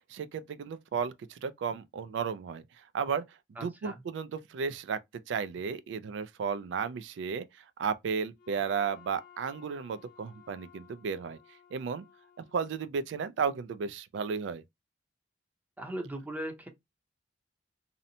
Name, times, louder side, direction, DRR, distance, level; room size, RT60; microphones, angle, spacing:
voice 1, 0.1-2.6 2.9-3.2 3.6-5.0 5.3-7.5 7.8-11.4 11.7-12.1 12.4-14.6, right 6 dB, 75° right, 0.3 m, -33 dB
voice 2, 3.6-4.0 15.8-16.7, right 1 dB, 10° right, 0.6 m, -38 dB
Wind instrument woodwind instrument, 8.4-13.1, left 9 dB, 45° left, 0.9 m, -57 dB
2.7 x 2.0 x 2.6 m
head